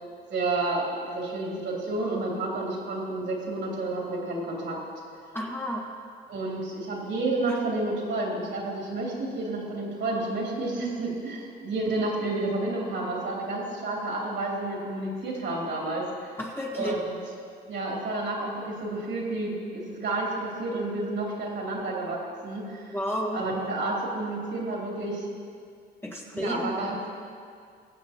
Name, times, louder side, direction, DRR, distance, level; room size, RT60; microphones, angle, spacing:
voice 1, 0.3-4.8 6.3-16.0 16.8-17.1 17.7-23.0 23.3-25.3 26.3-27.1, right 2 dB, 65° right, -3 dB, 3.2 m, -30 dB
voice 2, 5.3-5.8 7.5-7.6 12.0-12.1 16.4-17.0 22.9-23.4 26.0-26.7, equal, 10° left, -2 dB, 1.8 m, -31 dB
22.0 x 7.7 x 2.9 m, 2.3 s
cardioid pair, 90°, 20 cm